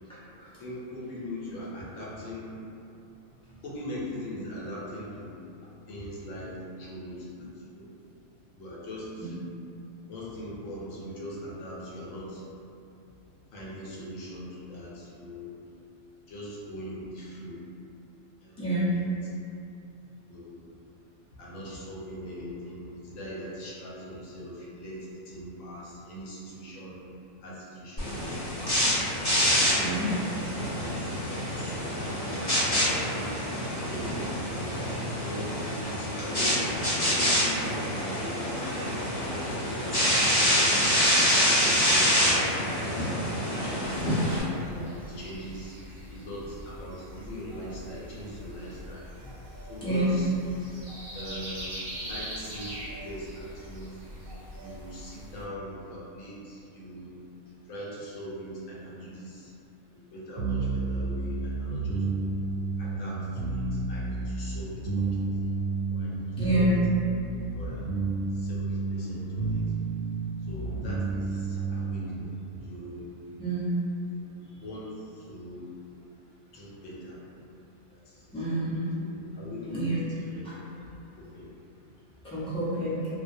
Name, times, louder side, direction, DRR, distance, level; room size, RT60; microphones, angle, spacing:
voice 1, 0.2-2.6 3.6-5.4 5.9-7.3 7.7-7.9 8.6-9.4 10.1-12.4 13.5-15.6 16.3-17.6 18.4-19.2 20.3-20.7 21.4-27.0 27.4-28.9 29.4-32.3 32.8-33.2 33.9-34.7 35.2-38.5 39.0-40.1 40.3-43.1 43.6-45.8 46.1-49.0 49.7-50.3 51.1-54.0 54.6-57.1 57.7-59.5 59.9-62.1 62.8-65.1 65.4-65.6 65.9-66.2 66.5-66.8 67.5-67.9 68.3-69.7 70.5-73.1 74.1-74.3 74.6-75.7 76.5-77.2 77.9-78.5 79.0-80.8 81.2-81.5, equal, 75° left, -6 dB, 1.0 m, -41 dB
voice 2, 18.6-18.9 29.8-30.1 43.5-43.6 49.8-50.1 66.4-66.8 73.4-73.7 78.3-78.9 79.7-80.0 80.4-80.5 82.2-83.1, right 1 dB, 5° left, -13 dB, 0.4 m, -28 dB
sound 1, 28.0-44.4, equal, 40° left, 0.8 m, -26 dB
sound 2, 43.8-55.4, equal, 55° right, 0.8 m, -42 dB
sound 3, 60.4-72.2, right 3 dB, 85° right, 1.0 m, -31 dB
2.3 x 2.1 x 2.5 m, 2.6 s
omnidirectional pair, 1.4 m